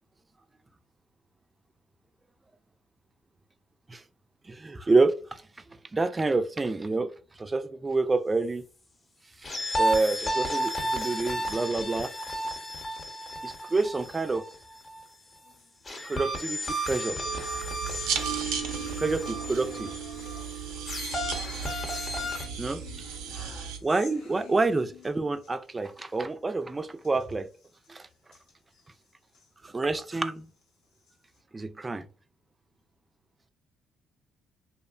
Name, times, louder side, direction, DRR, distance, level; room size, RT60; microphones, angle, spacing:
voice 1, 4.4-5.4 5.9-7.1 7.4-8.6 9.8-12.1 13.4-14.4 16.0-17.2 19.0-19.9 22.6-22.8 23.8-27.5 27.9-28.1 29.6-30.5 31.5-32.1, right 3 dB, 25° right, 0.3 m, -28 dB
sound 1, 9.4-15.0 15.9-22.5, equal, 35° left, 0.8 m, -33 dB
sound 2, 15.4-16.4 16.8-25.5 25.9-26.1 26.3-26.4 27.0-29.5 30.0-31.4, left 5 dB, 80° left, 0.7 m, -50 dB
sound 3, 17.2-23.8, right 7 dB, 85° right, 0.4 m, -35 dB
2.8 x 2.1 x 2.4 m
supercardioid pair, 70°, 0 cm